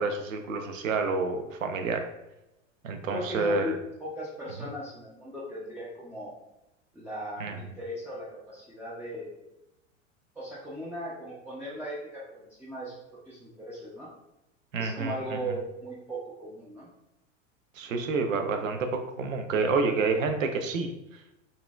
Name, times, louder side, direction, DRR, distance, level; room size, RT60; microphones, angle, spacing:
voice 1, 0.0-2.1 2.8-3.7 7.4-7.6 14.7-15.4 17.8-20.9, right 4 dB, 90° right, 5 dB, 0.6 m, -28 dB
voice 2, 3.1-6.4 6.9-9.4 10.4-14.1 14.8-16.9, right 1 dB, 5° right, -7 dB, 0.5 m, -38 dB
4.0 x 2.6 x 2.3 m, 0.91 s
hypercardioid pair, 95°, 38 cm